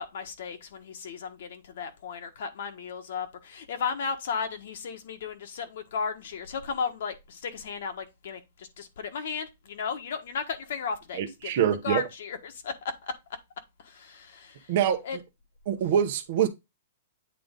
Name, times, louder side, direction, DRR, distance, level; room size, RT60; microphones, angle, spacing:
voice 1, 0.0-13.1 13.8-14.7 15.0-15.2, left 6 dB, 60° left, 1.4 m, -35 dB
voice 2, 11.1-12.0 14.7-15.0 15.7-16.5, right 9 dB, 45° right, 0.9 m, -25 dB
8.8 x 3.8 x 3.7 m
hypercardioid pair, 165°, 0 cm